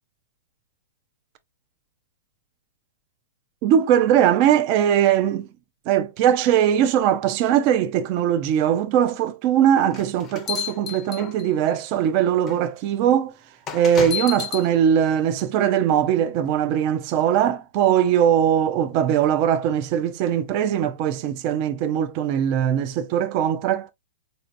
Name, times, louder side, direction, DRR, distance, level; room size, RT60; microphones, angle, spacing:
voice 1, 3.6-5.5 5.9-13.4 13.7-23.9, right 9 dB, 35° right, 0.5 m, -20 dB
sound 1, 9.9-11.7 12.5-12.6 13.7-14.7, left 9 dB, 20° left, 0.6 m, -30 dB
4.3 x 2.7 x 2.5 m
hypercardioid pair, 155°, 0 cm